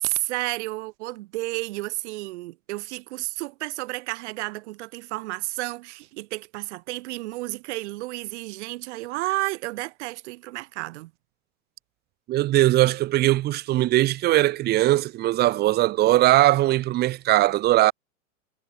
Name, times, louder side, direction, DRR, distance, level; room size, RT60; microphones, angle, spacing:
voice 1, 0.0-11.1, right 20 dB, 55° right, 1.3 m, -31 dB
voice 2, 12.3-17.9, right 15 dB, 25° right, 0.7 m, -20 dB
hypercardioid pair, 105°, 43 cm